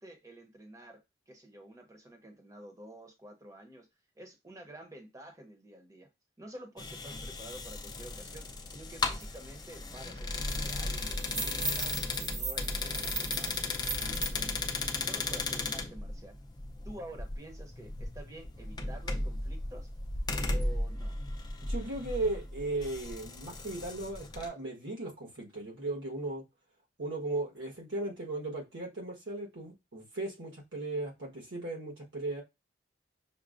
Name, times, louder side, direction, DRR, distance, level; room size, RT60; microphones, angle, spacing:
voice 1, 0.0-3.9 4.2-6.1 6.4-16.4 16.8-19.9 20.5-21.1, right 1 dB, 15° right, 0.7 m, -50 dB
sound 1, 6.8-24.5, left 2 dB, 20° left, 0.4 m, -36 dB
sound 2, 9.2-9.3 9.6-9.8 10.2-14.3, right 4 dB, 55° right, 1.0 m, -38 dB
voice 2, 21.6-26.4 27.0-32.4, right 2 dB, 85° right, 1.2 m, -36 dB
5.9 x 2.0 x 2.4 m
head